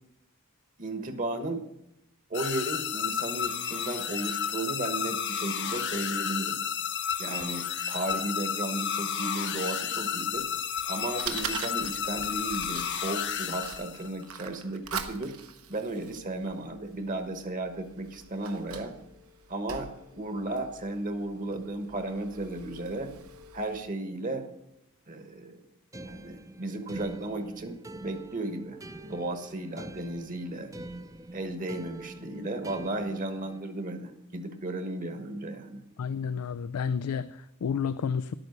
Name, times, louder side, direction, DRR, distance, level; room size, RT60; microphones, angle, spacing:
voice 1, 0.8-1.6 2.3-6.6 7.2-10.5 10.8-15.3 15.7-18.9 19.5-23.1 23.5-24.4 25.1-25.6 26.0-30.7 31.3-35.8, right 2 dB, 35° right, 8 dB, 1.2 m, -34 dB
sound 1, 2.3-14.2, left 8 dB, 55° left, 0.9 m, -32 dB
Fire, 10.4-23.8, right 7 dB, 75° right, 1.1 m, -43 dB
sound 2, 25.9-33.6, right 2 dB, 15° right, 0.5 m, -45 dB
voice 2, 36.0-38.3, left 6 dB, 85° left, 15 dB, 0.4 m, -31 dB
11.5 x 8.9 x 6.6 m, 0.85 s
head